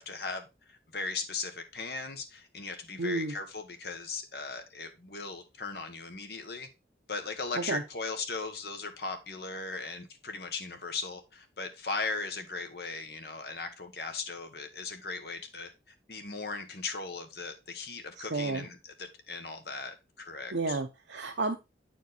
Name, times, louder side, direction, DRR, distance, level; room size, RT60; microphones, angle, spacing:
voice 1, 0.0-6.7 7.1-15.7 16.1-20.8, left 4 dB, 60° left, 1.3 m, -38 dB
voice 2, 3.0-3.3 7.5-7.8 18.2-18.6 20.5-21.6, right 3 dB, 80° right, 0.8 m, -31 dB
8.3 x 4.6 x 4.0 m
head